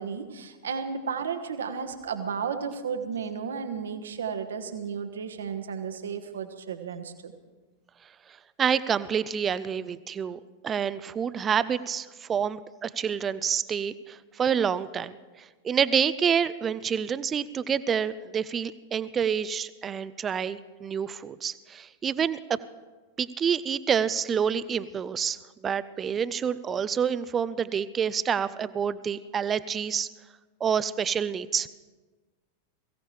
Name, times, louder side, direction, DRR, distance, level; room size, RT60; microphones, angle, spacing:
voice 1, 0.0-7.3, right 6 dB, 65° right, 8 dB, 1.2 m, -33 dB
voice 2, 8.6-15.2 15.6-22.6 23.2-25.4 25.6-30.1 30.6-31.7, right 7 dB, 20° right, 16 dB, 0.5 m, -28 dB
22.0 x 16.0 x 3.3 m, 1.3 s
figure-of-eight pair, 90°, 0 cm